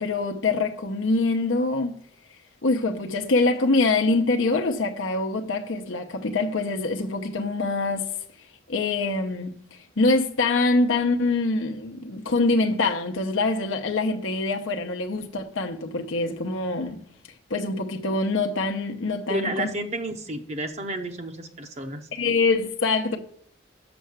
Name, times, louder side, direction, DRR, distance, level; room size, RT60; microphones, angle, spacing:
voice 1, 0.0-2.0 2.6-8.1 8.7-17.0 17.5-19.7 22.1-23.2, left 3 dB, 85° left, 0.8 m, -24 dB
voice 2, 19.3-22.1, right 1 dB, 35° right, 0.7 m, -31 dB
7.0 x 5.6 x 6.4 m
head